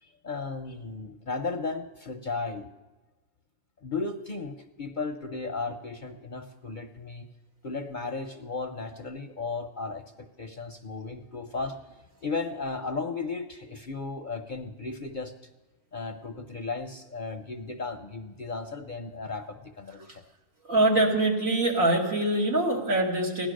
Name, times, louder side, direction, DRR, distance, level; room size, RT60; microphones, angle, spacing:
voice 1, 0.0-2.7 3.8-7.3 7.6-15.3 15.9-20.2, left 4 dB, 45° left, 6 dB, 0.7 m, -35 dB
voice 2, 20.6-23.5, right 1 dB, 75° right, -1 dB, 2.7 m, -24 dB
16.0 x 11.0 x 6.4 m, 1.2 s
omnidirectional pair, 1.4 m